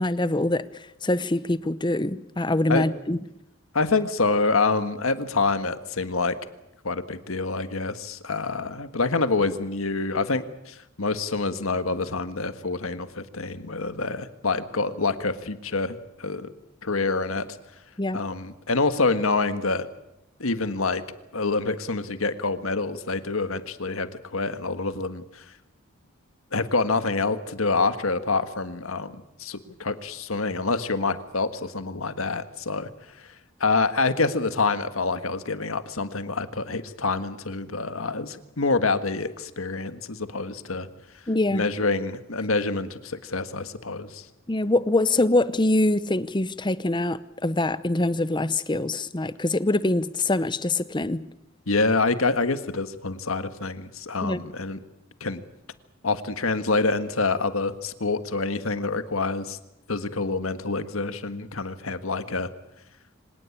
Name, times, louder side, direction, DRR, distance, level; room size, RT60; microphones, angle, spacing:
voice 1, 0.0-3.2 18.0-18.2 41.3-41.6 44.5-51.3 54.2-54.4, left 2 dB, 20° left, 15 dB, 0.8 m, -24 dB
voice 2, 3.7-6.3 6.8-16.5 16.8-17.5 18.1-19.9 20.4-21.0 21.3-25.4 26.5-32.9 33.2-33.3 33.6-40.9 41.5-44.3 51.7-54.8 55.2-55.4 56.0-59.6 59.9-62.5, left 3 dB, 80° left, 10 dB, 1.6 m, -26 dB
25.5 x 18.0 x 8.7 m, 0.87 s
head